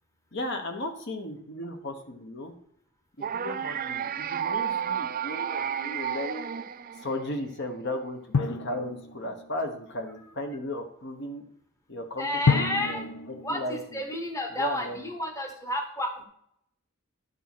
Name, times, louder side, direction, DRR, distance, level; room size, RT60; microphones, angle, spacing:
voice 1, 0.3-2.5 3.2-6.5 6.9-11.4 11.9-14.0 14.5-15.1, left 1 dB, 55° left, 5 dB, 1.1 m, -35 dB
sound 1, 3.2-7.4, right 8 dB, 40° right, 0.4 m, -31 dB
Drum, 8.3-9.8 12.5-14.6, left 4 dB, 80° left, 0.6 m, -30 dB
voice 2, 12.2-13.0 13.4-16.2, left 1 dB, 15° left, 3 dB, 1.0 m, -31 dB
11.0 x 4.2 x 6.1 m, 0.71 s
head